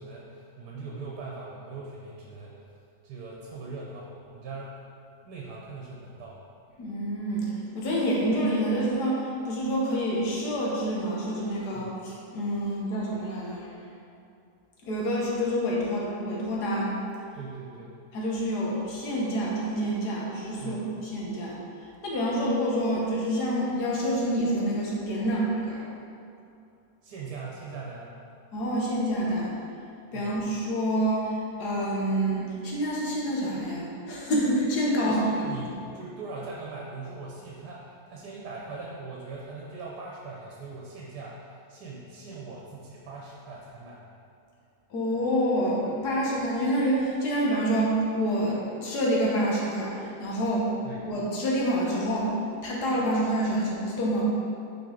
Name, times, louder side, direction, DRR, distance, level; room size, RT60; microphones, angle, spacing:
voice 1, 0.0-2.6 3.0-4.7 5.2-6.4 11.7-12.1 12.6-12.7 17.3-17.9 20.6-20.9 27.0-28.1 30.1-30.4 35.0-44.0 50.8-51.0, right 3 dB, 80° right, -3 dB, 1.3 m, -41 dB
voice 2, 6.8-13.6 14.8-17.0 18.1-20.8 21.1-21.6 22.0-25.8 28.5-29.6 30.1-35.3 35.6-35.7 44.9-50.7 51.0-52.3 52.6-54.2, equal, 80° left, -4 dB, 1.6 m, -27 dB
6.0 x 4.6 x 3.8 m, 2.6 s
omnidirectional pair, 1.7 m